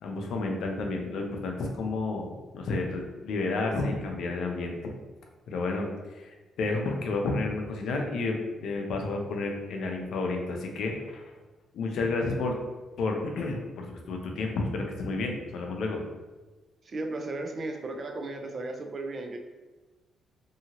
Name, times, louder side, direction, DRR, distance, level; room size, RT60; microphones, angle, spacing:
voice 1, 0.0-4.8 5.5-5.9 6.1-11.2 11.7-12.6 13.0-16.0, left 3 dB, 75° left, 2 dB, 0.5 m, -31 dB
voice 2, 16.8-19.4, right 2 dB, 40° right, 4 dB, 0.4 m, -35 dB
2.8 x 2.7 x 2.8 m, 1.2 s
cardioid pair, 90°, 0 cm